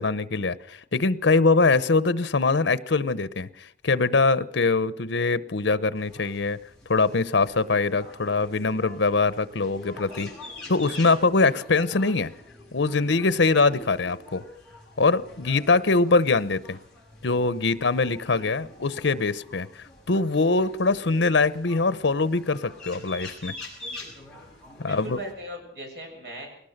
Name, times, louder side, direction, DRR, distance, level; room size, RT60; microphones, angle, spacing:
voice 1, 0.0-6.6 6.9-10.3 10.7-12.3 12.7-14.4 15.0-16.8 17.2-23.5 24.8-25.2, left 3 dB, 85° left, 16 dB, 0.9 m, -23 dB
sound 1, 5.9-25.3, left 2 dB, 5° left, 6.4 m, -45 dB
voice 2, 18.2-18.7 24.8-26.5, right 1 dB, 65° right, 2 dB, 7.1 m, -39 dB
21.5 x 18.0 x 6.6 m, 0.70 s
head